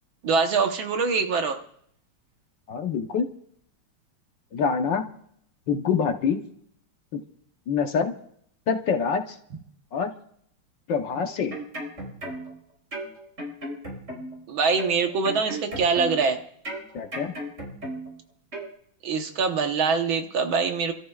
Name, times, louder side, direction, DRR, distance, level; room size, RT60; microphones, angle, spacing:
voice 1, 0.2-1.6 14.5-16.4 19.0-20.9, right 5 dB, 70° right, 5 dB, 1.9 m, -24 dB
voice 2, 2.7-3.3 4.5-5.1 5.7-6.4 7.1-7.2 7.7-8.1 8.7-9.4 9.9-10.1 10.9-11.5 16.9-17.3, left 6 dB, 60° left, 5 dB, 1.6 m, -25 dB
sound 1, 11.3-12.6 12.9-14.4 14.8-16.3 16.6-18.2 18.5-18.7, right 1 dB, 35° right, 4.4 m, -35 dB
29.0 x 13.5 x 2.4 m, 0.64 s
omnidirectional pair, 2.3 m